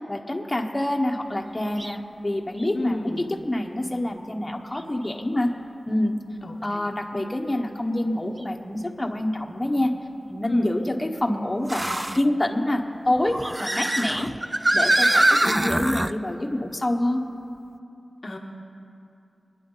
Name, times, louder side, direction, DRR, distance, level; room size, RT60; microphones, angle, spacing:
voice 1, 0.1-3.1 3.4-5.5 5.9-6.1 6.6-9.9 10.3-14.3 14.7-17.2, left 1 dB, 25° left, 1 dB, 1.3 m, -26 dB
sound 1, 1.8-2.0 2.6-2.7 4.8-4.9 8.4-8.5 11.7-12.2 13.2-16.1, right 1 dB, 20° right, 0.4 m, -23 dB
voice 2, 2.7-3.3 6.4-6.9 10.5-10.7 18.2-18.4, left 2 dB, 50° left, 1 dB, 1.1 m, -31 dB
25.0 x 10.0 x 4.1 m, 2.6 s
wide cardioid pair, 70°, 0 cm